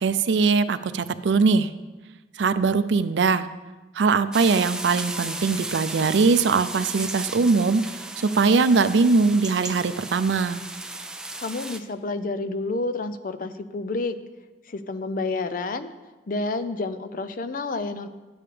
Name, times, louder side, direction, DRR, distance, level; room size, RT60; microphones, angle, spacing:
voice 1, 0.0-1.7 2.4-3.5 3.9-7.8 8.2-10.6, right 4 dB, 85° right, 13 dB, 0.5 m, -21 dB
sound 1, 4.3-11.8, right 2 dB, 5° right, 0.4 m, -35 dB
voice 2, 11.4-14.2 14.7-15.9 16.3-18.1, left 3 dB, 50° left, 11 dB, 0.5 m, -29 dB
12.0 x 8.8 x 3.3 m, 1.2 s
head